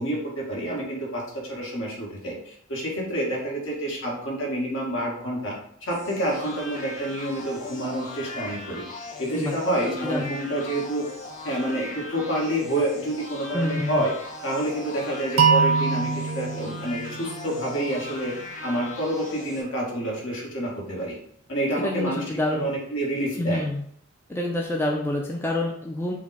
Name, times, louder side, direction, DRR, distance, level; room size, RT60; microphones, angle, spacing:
voice 1, 0.0-5.5 5.8-8.8 9.2-11.0 11.4-14.1 14.4-18.3 18.6-21.2 21.5-23.6, right 1 dB, 65° left, -4 dB, 1.4 m, -28 dB
sound 1, 5.9-19.6, left 2 dB, 40° left, 0.8 m, -39 dB
voice 2, 13.5-14.0 21.8-22.6 23.4-23.8 24.3-26.1, left 1 dB, 10° left, -1 dB, 0.4 m, -27 dB
sound 2, 15.4-18.3, right 5 dB, 70° right, 0.6 m, -24 dB
4.9 x 2.1 x 4.1 m, 0.66 s
head